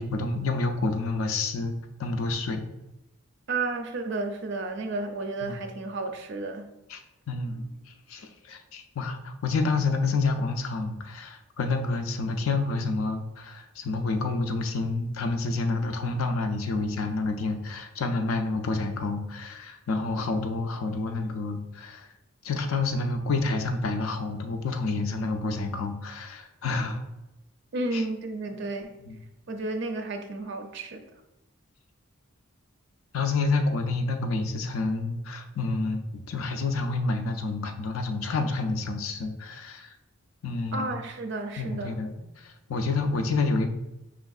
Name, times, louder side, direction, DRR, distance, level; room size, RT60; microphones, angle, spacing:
voice 1, 0.0-1.7 2.0-2.6 5.4-5.6 6.9-7.0 7.3-22.1 22.4-27.0 27.9-28.0 29.1-29.2 33.1-39.9 40.4-40.9 41.6-43.7, left 3 dB, 75° left, 6 dB, 0.5 m, -29 dB
voice 2, 3.5-6.7 27.7-28.9 29.5-31.1 40.7-42.0, right 2 dB, 55° right, 5 dB, 0.4 m, -32 dB
5.0 x 3.5 x 2.3 m, 0.94 s
head